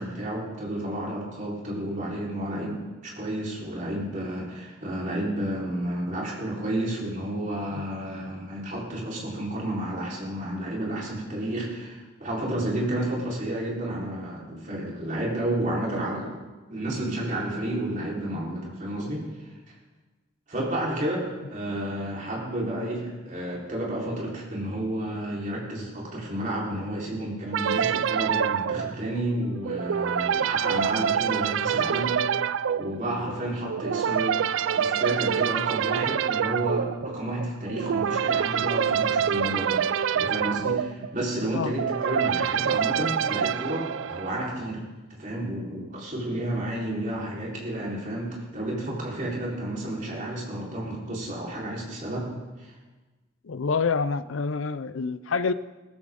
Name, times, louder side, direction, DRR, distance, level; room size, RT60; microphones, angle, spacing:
voice 1, 0.0-16.4 16.7-19.3 20.5-32.2 32.8-44.8 45.2-52.3 52.6-52.7, right 1 dB, 40° right, -4 dB, 4.2 m, -31 dB
sound 1, 27.5-44.7, right 8 dB, 80° right, 0.4 m, -26 dB
voice 2, 53.4-55.5, left 5 dB, 90° left, 15 dB, 0.6 m, -27 dB
18.0 x 14.0 x 3.8 m, 1.2 s
head